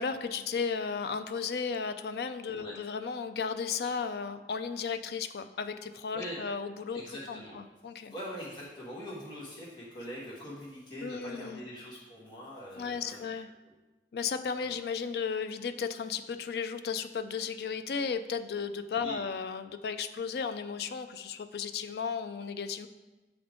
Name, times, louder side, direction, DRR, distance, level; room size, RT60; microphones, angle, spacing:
voice 1, 0.0-7.0 7.3-7.4 7.8-8.1 11.0-11.6 12.8-13.5 14.1-22.9, left 5 dB, 65° left, 9 dB, 0.4 m, -34 dB
voice 2, 6.9-7.6 8.1-13.2 13.6-13.8 14.6-14.7 19.0-19.2, equal, 25° left, -8 dB, 1.4 m, -43 dB
8.6 x 3.6 x 3.7 m, 1.1 s
head